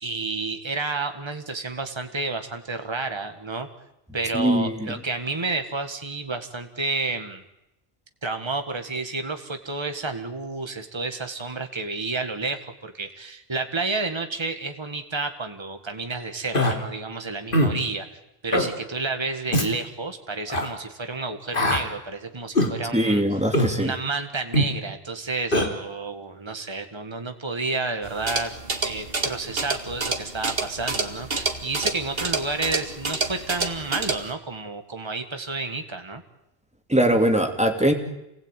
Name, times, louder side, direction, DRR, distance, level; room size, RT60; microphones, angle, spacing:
voice 1, 0.0-3.7 4.1-7.4 8.2-23.4 23.8-28.5 28.8-36.2, right 3 dB, 25° right, 6 dB, 1.8 m, -30 dB
voice 2, 4.3-4.9 22.9-23.9 36.9-37.9, right 1 dB, 5° right, 4 dB, 2.8 m, -21 dB
Human voice, 16.5-16.8 17.5-17.8 18.5-18.7 19.5-19.7 20.5-20.7 21.5-21.8 22.6-22.7 23.5-23.7 24.5-24.7 25.5-25.7, left 1 dB, 60° left, 3.1 m, -21 dB
sound 1, 28.0-34.3, right 3 dB, 65° right, 2.3 m, -29 dB
28.0 x 19.5 x 9.1 m, 0.89 s
omnidirectional pair, 1.0 m